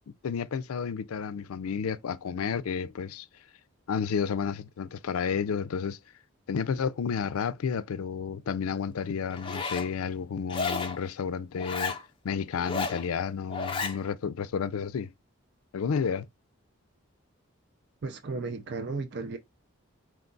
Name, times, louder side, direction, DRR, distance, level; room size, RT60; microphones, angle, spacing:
voice 1, 0.2-3.3 3.9-6.0 6.5-12.0 12.2-15.1 15.7-16.3, left 6 dB, 85° left, 0.4 m, -31 dB
Zipper (clothing), 9.3-9.9 10.5-11.0 11.6-12.0 12.6-13.0 13.5-14.0, left 4 dB, 25° left, 0.6 m, -32 dB
voice 2, 18.0-19.4, right 3 dB, 50° right, 0.4 m, -34 dB
4.6 x 2.3 x 3.8 m
head